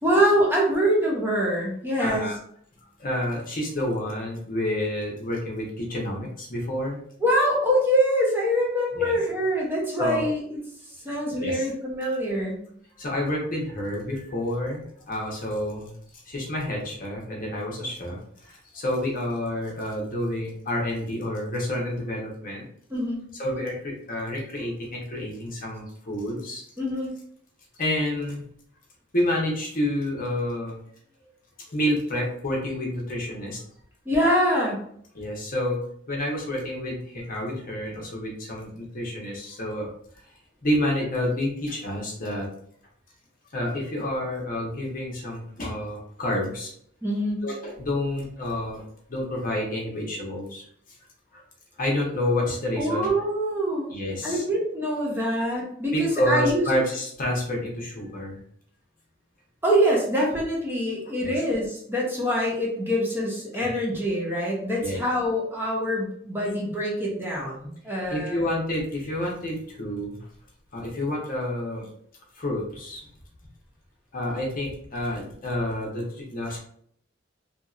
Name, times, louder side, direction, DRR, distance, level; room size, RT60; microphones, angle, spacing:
voice 1, 0.0-2.3 7.2-10.6 11.0-12.7 22.9-23.2 26.8-27.1 34.1-34.9 47.0-47.4 52.8-53.9 54.2-56.6 59.6-68.4, equal, 10° right, -4 dB, 0.7 m, -24 dB
voice 2, 2.0-2.4 3.0-7.0 8.9-9.1 10.0-10.3 11.4-11.7 13.0-15.9 16.3-22.7 23.4-26.6 27.8-28.4 29.1-30.8 31.7-33.6 35.1-35.8 36.1-39.9 40.6-42.5 43.5-46.7 47.4-50.6 51.3-51.4 51.8-53.1 53.9-54.4 55.9-58.4 61.2-61.3 63.5-63.7 64.8-65.0 68.1-70.2 70.7-71.9 72.4-73.0 74.1-76.6, left 1 dB, 45° left, -1 dB, 0.9 m, -29 dB
2.8 x 2.8 x 2.4 m, 0.65 s
head